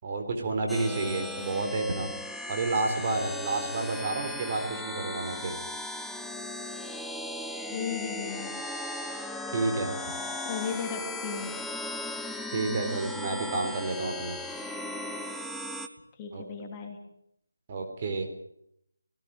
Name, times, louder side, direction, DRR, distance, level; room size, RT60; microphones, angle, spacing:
voice 1, 0.0-2.1 2.5-5.5 9.5-10.0 12.5-14.4 16.3-16.4 17.7-18.3, right 3 dB, 30° right, 3 dB, 3.9 m, -30 dB
sound 1, 0.7-15.9, left 1 dB, ahead, 0.9 m, -37 dB
voice 2, 7.7-8.5 10.4-11.6 16.1-17.0, left 6 dB, 20° left, 3 dB, 3.4 m, -35 dB
18.0 x 17.0 x 8.9 m, 0.75 s
figure-of-eight pair, 160°, 0 cm